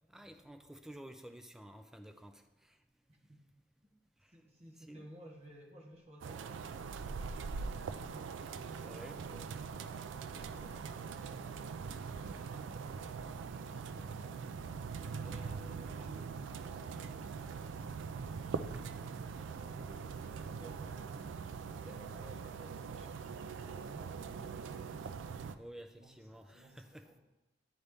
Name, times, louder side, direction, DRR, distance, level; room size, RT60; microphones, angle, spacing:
voice 1, 0.1-2.8 4.2-4.3 4.8-5.0 8.8-9.2 25.6-27.2, right 1 dB, 5° right, 0.4 m, -52 dB
voice 2, 4.3-8.3 8.8-11.2 11.9-14.8 15.2-17.4 19.0-21.3 21.6-24.9 25.9-27.2, right 1 dB, 35° right, 1.3 m, -58 dB
sound 1, 6.2-25.6, right 5 dB, 90° right, 0.4 m, -42 dB
11.0 x 4.0 x 3.5 m
head